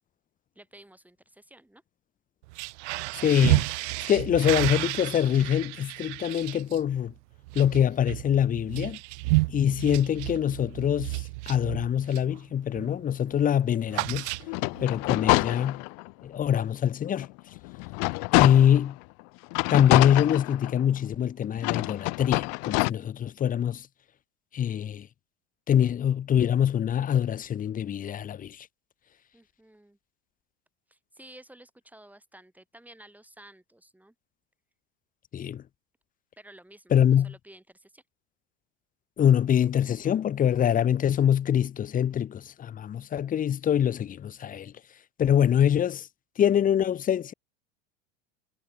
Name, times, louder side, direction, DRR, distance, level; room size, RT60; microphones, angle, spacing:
voice 1, 0.5-1.8 29.3-30.0 30.9-34.1 36.4-38.0, right 1 dB, 5° right, 6.6 m, -52 dB
sound 1, 2.4-12.4 12.7-13.0 13.3-14.9, right 24 dB, 65° right, 0.5 m, -31 dB
voice 2, 3.2-7.1 7.5-9.0 9.5-14.3 14.8-15.9 16.2-17.3 18.3-19.0 19.7-23.9 24.5-25.1 25.7-28.7 35.3-35.6 36.9-37.3 39.2-44.7 45.2-46.1 46.4-47.3, left 9 dB, 20° left, 0.7 m, -24 dB
sound 2, 14.4-16.1 16.6-16.7 17.1-18.9 19.5-21.0 21.6-22.9, left 40 dB or more, 55° left, 1.0 m, -26 dB
hypercardioid pair, 105°, 37 cm